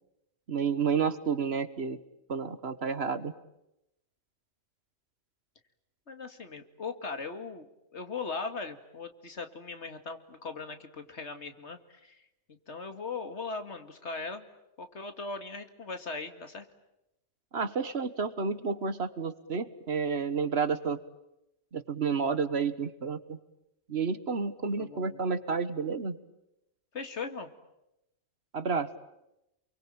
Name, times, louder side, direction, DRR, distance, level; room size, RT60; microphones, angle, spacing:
voice 1, 0.5-2.0 2.3-3.3 17.5-21.0 21.7-23.4 23.9-26.2 28.5-28.9, right 5 dB, 60° right, 13 dB, 1.6 m, -30 dB
voice 2, 6.1-7.7 7.9-12.2 12.7-14.5 14.8-16.7 24.8-25.3 26.9-27.5, left 4 dB, 70° left, 8 dB, 2.4 m, -39 dB
29.0 x 23.5 x 8.8 m, 0.87 s
omnidirectional pair, 1.2 m